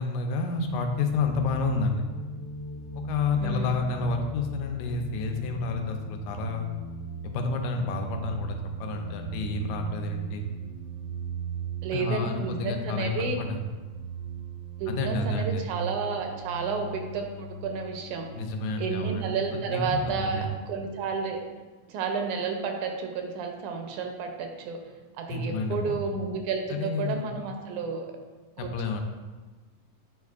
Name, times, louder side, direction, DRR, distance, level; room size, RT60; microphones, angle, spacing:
voice 1, 0.0-2.1 3.1-6.7 7.2-10.5 11.9-13.6 14.9-15.7 18.3-19.4 19.7-20.5 25.3-26.1 26.7-27.2 28.6-29.0, left 3 dB, 80° left, 4 dB, 2.0 m, -30 dB
sound 1, 0.6-20.2, right 1 dB, 55° left, 1.3 m, -38 dB
voice 2, 3.4-3.7 11.8-13.4 14.8-18.3 18.8-21.4 21.9-24.8 25.2-28.1 28.6-28.7, right 5 dB, 80° right, 4 dB, 2.1 m, -31 dB
8.8 x 4.5 x 2.4 m, 1.3 s
omnidirectional pair, 3.5 m